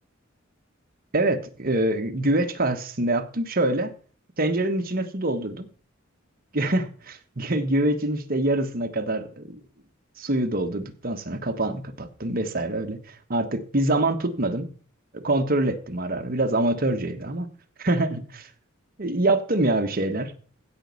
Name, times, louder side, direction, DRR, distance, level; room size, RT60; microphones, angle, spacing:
voice 1, 1.1-3.9 4.4-5.7 6.5-6.8 7.4-9.6 10.2-13.0 13.3-14.7 15.1-17.5 17.8-18.5 19.0-20.3, right 2 dB, 45° right, 1.3 m, -25 dB
15.5 x 5.2 x 7.1 m
head